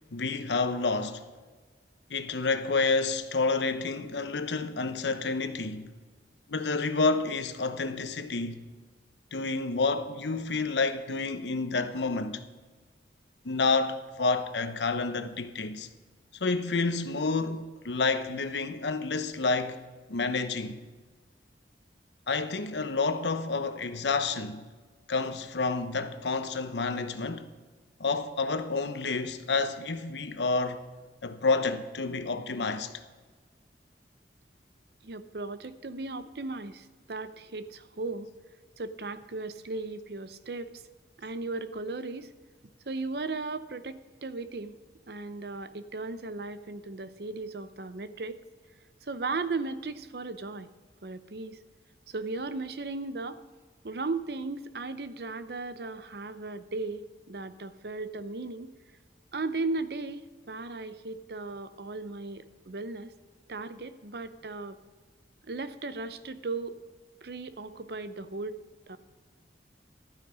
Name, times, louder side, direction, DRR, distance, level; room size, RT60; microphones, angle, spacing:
voice 1, 0.1-1.3 2.1-5.9 6.5-8.6 9.3-12.4 13.4-15.9 16.4-19.8 20.1-20.8 22.3-24.7 25.1-27.5 28.0-30.8 31.2-32.9, left 3 dB, 85° left, 0.9 m, -29 dB
voice 2, 35.0-38.3 38.8-40.8 41.2-42.3 42.9-44.7 45.1-48.4 49.0-50.7 51.0-51.6 52.1-53.4 53.8-58.7 59.3-63.1 63.5-64.8 65.5-66.8 67.2-68.5 68.9-69.0, right 3 dB, 65° right, 0.7 m, -36 dB
12.5 x 9.5 x 5.0 m
head